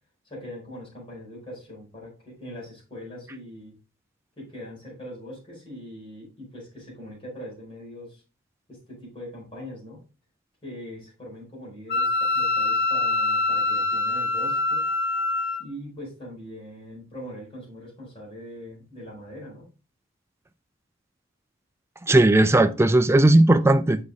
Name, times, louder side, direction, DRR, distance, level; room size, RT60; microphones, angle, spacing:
voice 1, 0.2-3.7 4.4-8.2 8.7-10.0 10.6-14.9 15.6-19.7, equal, 25° left, 4.4 m, -41 dB
Wind instrument woodwind instrument, 11.9-15.6, left 3 dB, 55° left, 0.7 m, -24 dB
voice 2, 22.0-24.0, right 1 dB, 15° right, 0.4 m, -17 dB
6.7 x 5.3 x 3.5 m
head